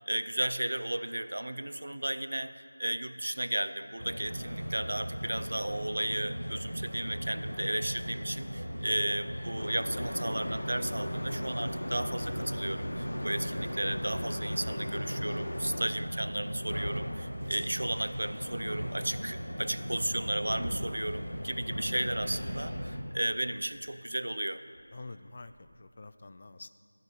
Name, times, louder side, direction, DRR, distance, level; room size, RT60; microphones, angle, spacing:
voice 1, 0.0-24.6, right 1 dB, 60° right, 12 dB, 0.6 m, -34 dB
sound 1, 4.0-23.0, equal, 85° left, 2.4 m, -37 dB
sound 2, 9.6-15.8, left 1 dB, 65° left, 1.3 m, -38 dB
sound 3, 12.6-25.8, right 1 dB, 40° right, 1.5 m, -55 dB
voice 2, 18.6-19.1 24.9-26.7, left 3 dB, 35° left, 11 dB, 0.4 m, -48 dB
15.0 x 6.2 x 8.9 m, 2.4 s
figure-of-eight pair, 170°, 0 cm